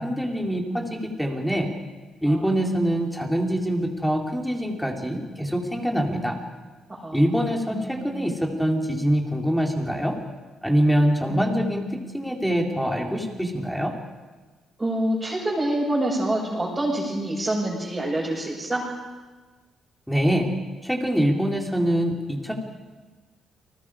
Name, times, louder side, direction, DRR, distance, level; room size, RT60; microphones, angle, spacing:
voice 1, 0.0-1.7 2.2-6.4 7.1-10.2 10.6-11.8 12.1-13.9 20.1-20.5 20.8-22.5, equal, ahead, 1 dB, 3.8 m, -24 dB
voice 2, 2.2-2.6 6.1-6.4 6.9-7.3 7.7-8.3 11.3-12.2 14.8-18.9, right 1 dB, 15° right, -8 dB, 6.6 m, -27 dB
29.5 x 20.0 x 5.0 m, 1.3 s
cardioid pair, 90°, 0 cm